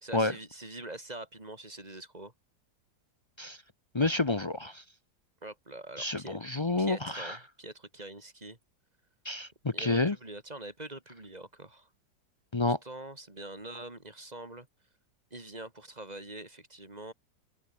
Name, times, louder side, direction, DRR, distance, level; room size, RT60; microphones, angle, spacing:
voice 1, 0.0-2.3 5.4-6.4 6.8-8.6 9.7-11.9 12.8-14.7 15.3-17.1, right 2 dB, 20° right, 3.1 m, -44 dB
voice 2, 3.9-4.8 6.0-7.4 9.2-10.2 12.5-12.8, left 2 dB, 45° left, 0.3 m, -29 dB
open air
omnidirectional pair, 2.0 m